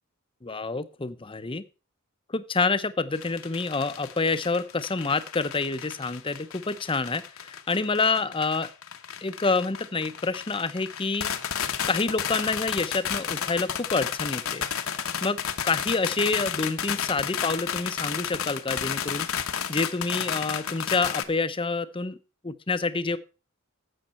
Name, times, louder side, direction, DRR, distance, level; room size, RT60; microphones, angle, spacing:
voice 1, 0.4-1.6 2.3-8.7 9.2-11.3 11.9-14.6 15.2-19.3 19.7-22.2 22.4-23.2, left 3 dB, 25° left, 13 dB, 0.7 m, -27 dB
sound 1, 3.1-21.2, left 8 dB, 70° left, 1.1 m, -32 dB
12.0 x 7.9 x 4.2 m, 0.33 s
head